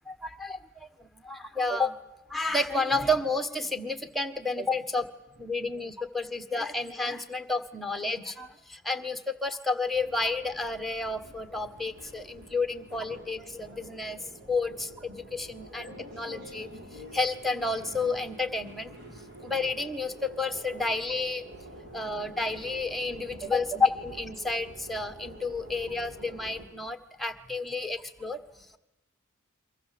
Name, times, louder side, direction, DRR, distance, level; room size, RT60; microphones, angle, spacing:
voice 1, 0.0-2.0 2.3-5.0 5.4-16.7 16.9-18.9 19.4-21.5 21.9-28.8, left 3 dB, ahead, 8 dB, 1.5 m, -31 dB
sound 1, 9.9-26.6, right 1 dB, 55° right, 5.7 m, -47 dB
29.0 x 24.0 x 7.7 m, 0.90 s
head